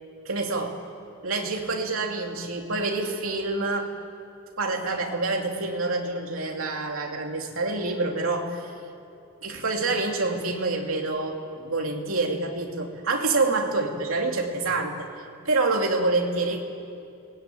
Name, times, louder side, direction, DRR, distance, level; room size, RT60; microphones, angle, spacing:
voice 1, 0.3-0.8 1.2-3.9 4.6-8.7 9.4-15.1 15.4-16.6, right 3 dB, 85° right, 2 dB, 2.7 m, -27 dB
24.0 x 19.5 x 9.2 m, 2.6 s
head